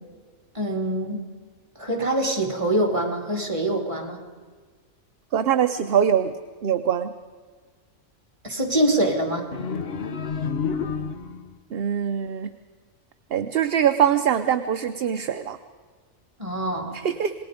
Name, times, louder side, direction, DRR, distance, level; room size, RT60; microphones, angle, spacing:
voice 1, 0.5-1.2 1.8-4.2 8.4-9.5 16.4-17.0, right 1 dB, 25° right, 3 dB, 2.9 m, -24 dB
voice 2, 5.3-6.3 6.6-7.1 11.7-12.5 13.3-15.6 16.9-17.3, right 9 dB, 55° right, 8 dB, 0.9 m, -23 dB
sound 1, 9.5-11.6, left 6 dB, 55° left, 1.4 m, -29 dB
27.5 x 20.0 x 5.1 m, 1.5 s
omnidirectional pair, 1.3 m